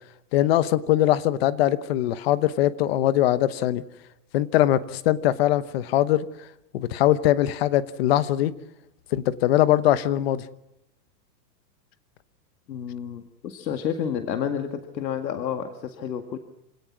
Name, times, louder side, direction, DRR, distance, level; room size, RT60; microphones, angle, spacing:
voice 1, 0.3-3.8 4.3-6.3 6.7-8.5 9.1-10.4, left 13 dB, 35° left, 15 dB, 1.0 m, -21 dB
voice 2, 12.7-16.4, left 8 dB, 85° left, 6 dB, 2.2 m, -30 dB
27.0 x 17.5 x 6.1 m, 0.85 s
supercardioid pair, 165°, 49 cm